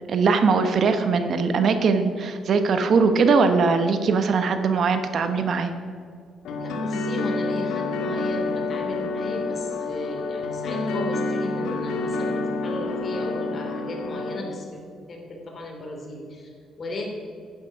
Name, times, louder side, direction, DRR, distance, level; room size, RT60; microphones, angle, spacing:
voice 1, 0.1-5.7, right 4 dB, 55° right, 8 dB, 1.0 m, -21 dB
sound 1, 6.4-14.4, left 3 dB, 80° left, 1.6 m, -28 dB
voice 2, 6.6-14.8 15.1-17.1, left 1 dB, 45° left, 1 dB, 3.0 m, -35 dB
10.5 x 9.5 x 5.9 m, 2.2 s
cardioid pair, 95°, 0 cm